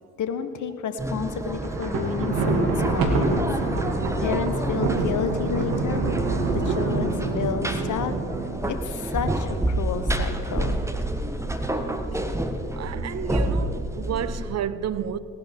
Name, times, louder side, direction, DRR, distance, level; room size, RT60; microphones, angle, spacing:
voice 1, 0.2-3.5 4.2-6.0 6.5-8.1 8.7-10.8, left 6 dB, 55° left, 1.2 m, -30 dB
sound 1, 1.0-14.6, right 1 dB, 10° right, 1.3 m, -29 dB
Thunder, 1.6-8.9, right 3 dB, 70° right, 1.9 m, -26 dB
voice 2, 12.8-15.2, right 9 dB, 45° right, 0.7 m, -30 dB
18.5 x 11.5 x 4.4 m
hypercardioid pair, 45°, 37 cm